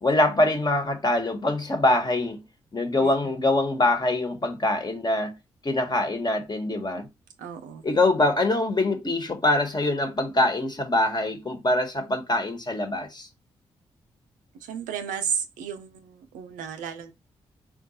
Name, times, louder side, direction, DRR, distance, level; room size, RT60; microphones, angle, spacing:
voice 1, 0.0-2.4 2.7-5.4 5.6-7.1 7.8-13.3, left 2 dB, 35° left, 1.2 m, -24 dB
voice 2, 3.0-3.3 7.4-7.8 14.5-17.1, right 7 dB, 85° right, 0.6 m, -33 dB
3.8 x 2.3 x 4.1 m
supercardioid pair, 45°, 13 cm